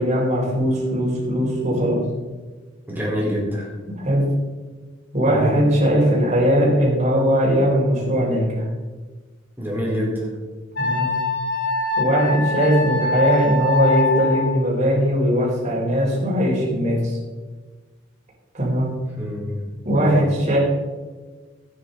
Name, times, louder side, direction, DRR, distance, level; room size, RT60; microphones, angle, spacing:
voice 1, 0.0-2.0 4.0-4.2 5.1-8.7 10.8-11.1 12.0-17.2 18.5-18.9 19.8-20.6, equal, 40° right, -4 dB, 4.2 m, -19 dB
voice 2, 2.9-3.7 5.3-5.5 9.6-10.1 19.2-19.6 19.9-20.2, equal, 10° right, -5 dB, 4.2 m, -25 dB
Wind instrument woodwind instrument, 10.7-14.5, left 3 dB, 75° left, 3.4 m, -23 dB
12.5 x 9.6 x 4.0 m, 1.3 s
head